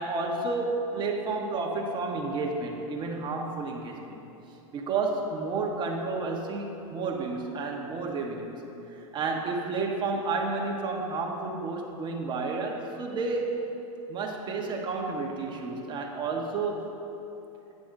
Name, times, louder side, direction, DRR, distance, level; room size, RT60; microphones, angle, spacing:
voice 1, 0.0-4.2 4.7-8.6 8.9-13.6 14.1-16.9, right 3 dB, 25° right, 1 dB, 1.0 m, -31 dB
11.0 x 8.6 x 2.6 m, 2.9 s
hypercardioid pair, 125°, 18 cm